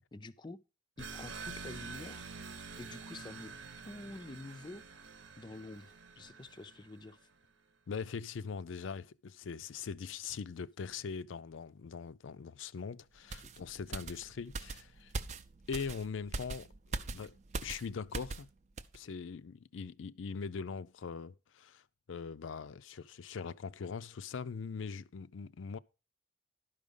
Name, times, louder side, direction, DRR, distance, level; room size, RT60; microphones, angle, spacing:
voice 1, 0.1-0.6 1.0-2.3 2.8-3.5 3.8-4.9 5.4-7.2 13.4-13.5, left 2 dB, 25° left, 0.4 m, -48 dB
sound 1, 1.0-7.2, right 5 dB, 75° right, 1.0 m, -47 dB
voice 2, 7.9-15.1 15.7-16.7 17.1-17.4 17.6-18.5 18.9-21.8 22.1-25.8, left 5 dB, 80° left, 0.4 m, -41 dB
sound 2, 13.3-18.5 18.8-19.0, right 3 dB, 35° right, 0.5 m, -41 dB
11.5 x 5.1 x 5.3 m
head